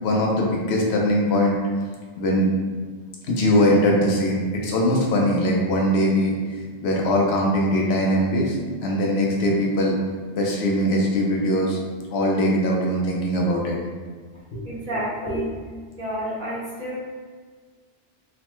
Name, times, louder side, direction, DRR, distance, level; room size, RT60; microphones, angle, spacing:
voice 1, 0.0-1.6 2.2-2.5 3.3-6.3 6.8-10.0 10.3-11.8 12.1-13.8 14.5-14.7 15.2-15.4, equal, 80° left, -1 dB, 0.9 m, -21 dB
voice 2, 14.6-15.5 16.0-17.0, right 1 dB, 55° right, -8 dB, 1.1 m, -30 dB
3.0 x 2.1 x 3.0 m, 1.5 s
omnidirectional pair, 1.1 m